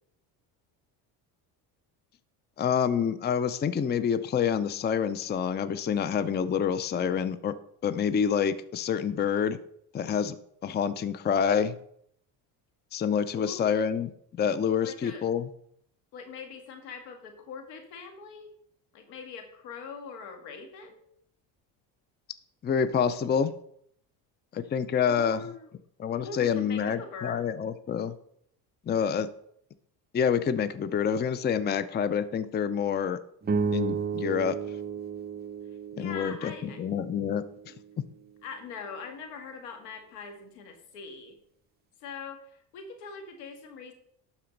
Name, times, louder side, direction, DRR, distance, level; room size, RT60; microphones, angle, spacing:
voice 1, 2.6-7.5 7.8-9.6 9.9-10.4 10.6-11.8 12.9-14.1 14.4-15.5 22.6-23.5 24.5-25.4 26.0-28.1 28.9-29.3 30.1-33.2 33.7-34.6 36.0-37.7, left 7 dB, 20° left, 13 dB, 0.5 m, -27 dB
voice 2, 13.3-13.9 14.8-15.2 16.1-18.5 18.9-21.0 25.1-25.7 26.2-27.4 36.0-36.8 38.4-41.3 42.0-43.9, left 5 dB, 90° left, 5 dB, 1.8 m, -42 dB
sound 1, 33.4-37.9, right 5 dB, 20° right, 0.6 m, -33 dB
12.0 x 4.3 x 5.2 m, 0.69 s
supercardioid pair, 90°, 48 cm